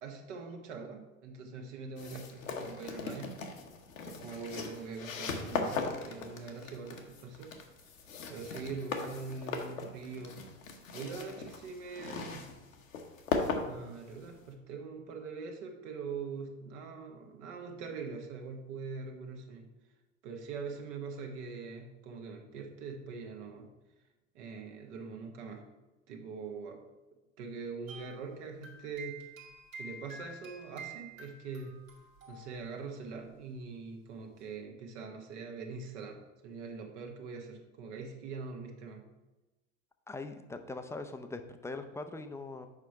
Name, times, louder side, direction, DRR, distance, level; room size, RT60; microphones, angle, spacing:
voice 1, 0.0-3.4 4.0-7.5 8.3-10.4 10.9-12.5 13.7-19.7 20.2-23.7 24.3-25.6 26.1-26.9 27.4-29.2 29.8-31.8 32.3-39.0, right 4 dB, 60° right, 3 dB, 1.3 m, -43 dB
sound 1, 2.0-14.5, left 4 dB, 80° left, 1.1 m, -39 dB
sound 2, 27.9-32.9 33.1-33.3 34.4-34.5, right 3 dB, 80° right, 1.7 m, -49 dB
voice 2, 40.1-42.7, left 3 dB, 5° left, 7 dB, 0.5 m, -41 dB
7.3 x 5.2 x 4.6 m, 1.1 s
figure-of-eight pair, 75°, 40 cm